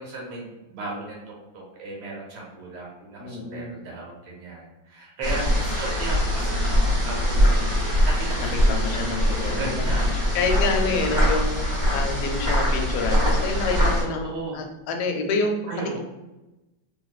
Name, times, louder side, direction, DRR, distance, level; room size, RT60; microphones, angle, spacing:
voice 1, 0.0-10.3 14.0-14.6 15.7-16.0, right 2 dB, 85° right, -3 dB, 1.8 m, -36 dB
voice 2, 3.2-3.7 8.5-9.8 10.1-15.8, left 3 dB, 85° left, 4 dB, 1.4 m, -28 dB
sound 1, 5.2-14.0, equal, 35° right, 1.3 m, -22 dB
3.4 x 2.6 x 2.3 m, 1.0 s
omnidirectional pair, 2.2 m